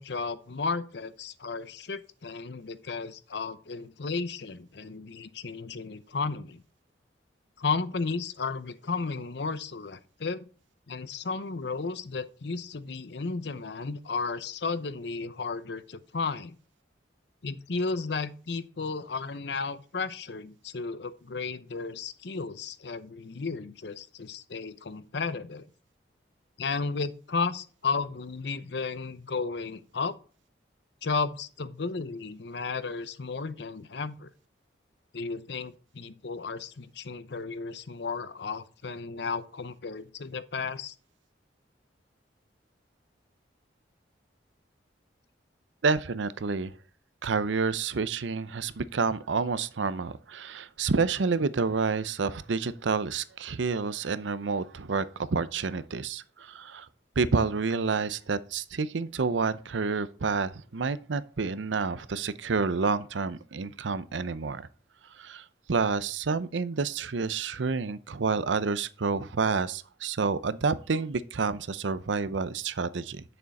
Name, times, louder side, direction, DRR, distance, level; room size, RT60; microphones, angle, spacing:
voice 1, 0.0-6.6 7.6-10.5 10.9-16.5 17.4-25.7 26.6-30.2 31.0-34.3 35.1-40.9, left 4 dB, 65° left, 0.7 m, -33 dB
voice 2, 45.8-46.7 47.2-56.9 57.2-64.7 65.2-73.2, right 4 dB, 85° right, 0.6 m, -29 dB
8.7 x 6.8 x 4.1 m
head